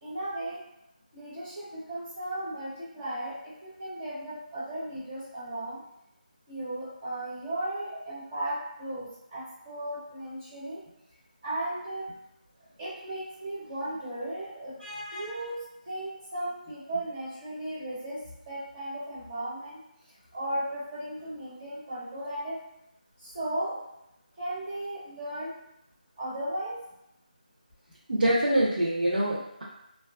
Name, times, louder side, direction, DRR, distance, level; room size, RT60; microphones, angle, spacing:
voice 1, 0.0-0.6 1.1-5.8 6.5-10.8 11.4-12.1 12.8-14.7 15.1-18.2 18.5-19.8 20.3-22.6 23.2-23.8 24.4-25.5 26.2-26.8, right 1 dB, 10° right, -9 dB, 0.4 m, -35 dB
voice 2, 14.8-15.3 28.1-29.6, right 1 dB, 80° right, -5 dB, 0.6 m, -26 dB
2.7 x 2.3 x 2.3 m, 0.82 s
figure-of-eight pair, 175°, 5 cm